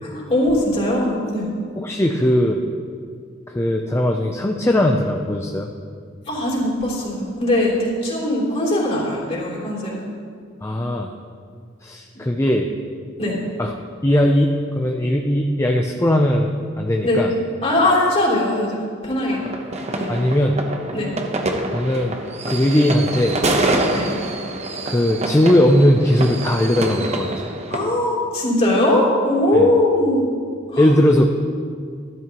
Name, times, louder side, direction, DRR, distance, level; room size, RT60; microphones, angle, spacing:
voice 1, 0.0-1.5 6.3-10.1 13.2-13.4 17.0-19.4 20.0-20.1 20.9-21.1 23.9-24.2 27.7-30.2 30.7-30.9, left 1 dB, 35° left, -6 dB, 3.4 m, -20 dB
voice 2, 1.8-2.6 3.5-5.7 10.6-11.1 11.8-12.7 13.6-13.7 14.0-16.5 16.8-17.3 20.1-20.6 21.7-22.1 22.5-23.4 24.0-24.2 24.9-27.3 29.6-29.7 30.8-31.2, left 1 dB, 15° left, 2 dB, 0.5 m, -18 dB
sound 1, 19.3-27.8, right 2 dB, 35° right, 0.9 m, -26 dB
13.5 x 12.5 x 3.0 m, 2.1 s
head